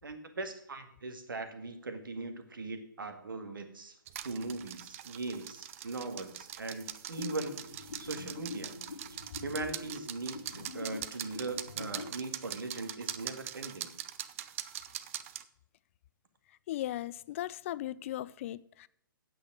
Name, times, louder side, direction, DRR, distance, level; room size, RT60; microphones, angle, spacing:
voice 1, 0.0-4.0 4.2-8.7 9.1-13.9, right 3 dB, 70° right, 1.8 m, -40 dB
sound 1, 4.1-15.4, right 11 dB, 40° right, 0.6 m, -43 dB
sound 2, 7.2-12.2, left 4 dB, 85° left, 0.9 m, -45 dB
voice 2, 16.7-18.9, left 13 dB, 35° left, 0.4 m, -37 dB
9.1 x 7.9 x 6.1 m
figure-of-eight pair, 125°, 12 cm